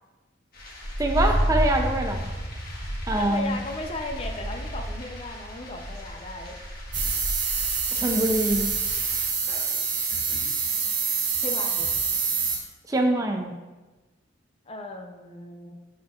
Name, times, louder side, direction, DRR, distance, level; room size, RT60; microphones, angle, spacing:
sound 1, 0.5-9.3, equal, 50° left, 1.4 m, -31 dB
voice 1, 1.0-2.3 3.1-3.6 7.9-8.7 12.9-13.6, right 1 dB, 20° right, 3 dB, 0.4 m, -24 dB
voice 2, 3.2-6.5 11.4-11.9 14.7-15.7, left 2 dB, 30° left, 3 dB, 0.6 m, -36 dB
sound 2, 6.9-12.6, right 5 dB, 70° right, 1.8 m, -26 dB
12.0 x 4.4 x 2.4 m, 1.2 s
head